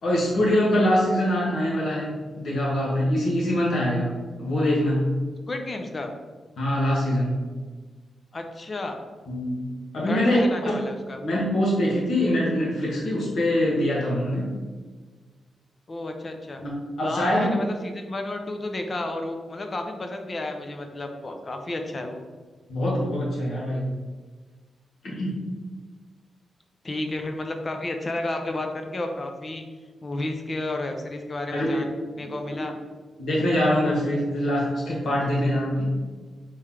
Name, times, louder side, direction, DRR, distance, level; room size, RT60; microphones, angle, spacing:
voice 1, 0.0-5.1 6.6-7.4 9.3-9.7 9.9-10.7 11.2-14.5 16.6-16.7 17.0-17.5 22.7-23.9 25.2-25.4 31.5-31.9 32.2-32.7 33.2-35.9, left 1 dB, 70° left, -4 dB, 1.5 m, -24 dB
voice 2, 5.5-6.1 8.3-9.0 10.1-11.2 15.9-16.6 17.0-22.2 25.1-25.4 26.8-29.6 30.0-32.8, left 2 dB, 35° left, 4 dB, 0.5 m, -32 dB
4.4 x 3.1 x 3.7 m, 1.4 s
wide cardioid pair, 120°, 0 cm